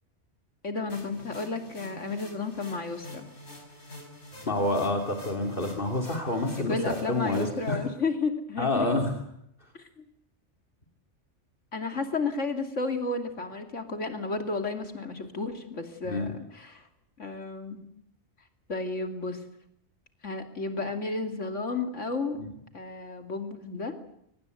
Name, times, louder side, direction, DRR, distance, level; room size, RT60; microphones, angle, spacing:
voice 1, 0.6-3.3 6.5-8.9 9.7-10.0 11.7-16.9 17.2-17.8 18.7-19.4 20.2-22.4 22.7-23.9, left 3 dB, 90° left, 6 dB, 3.1 m, -32 dB
sound 1, 0.9-7.7, equal, 65° left, 6.0 m, -47 dB
voice 2, 4.5-7.8 8.6-9.1 16.0-16.3, left 2 dB, 45° left, 2 dB, 3.0 m, -28 dB
24.0 x 19.5 x 9.3 m, 0.75 s
omnidirectional pair, 1.2 m